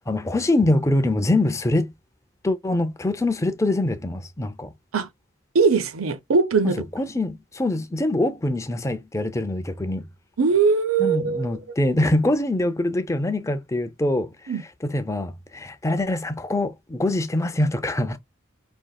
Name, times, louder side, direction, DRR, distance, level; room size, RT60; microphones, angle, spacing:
voice 1, 0.1-1.9 2.4-4.7 6.6-10.1 11.0-14.3 14.8-18.2, left 1 dB, 15° left, 0.4 m, -24 dB
voice 2, 5.5-6.8 10.4-11.5 14.5-14.6, right 5 dB, 80° right, 0.7 m, -20 dB
5.3 x 2.8 x 2.2 m
head